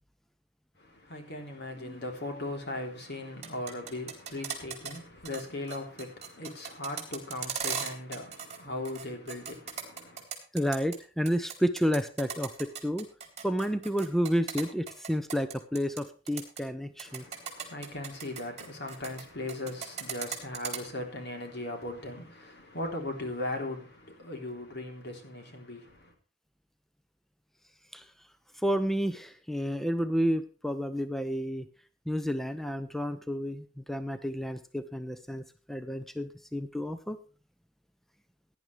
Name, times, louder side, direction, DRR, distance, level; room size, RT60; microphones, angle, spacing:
voice 1, 0.8-10.3 17.0-26.1, left 1 dB, 60° left, 3.5 m, -38 dB
sound 1, 3.3-5.0 5.2-5.4 5.7-8.6 8.8-11.0 11.3-16.0 16.3-16.6 17.0-19.2 19.5-20.8, right 7 dB, 35° right, 3.7 m, -37 dB
voice 2, 10.5-13.1 13.4-17.2 27.9-28.1 28.5-31.7 32.1-37.2, equal, ahead, 0.6 m, -31 dB
17.5 x 10.5 x 3.3 m
head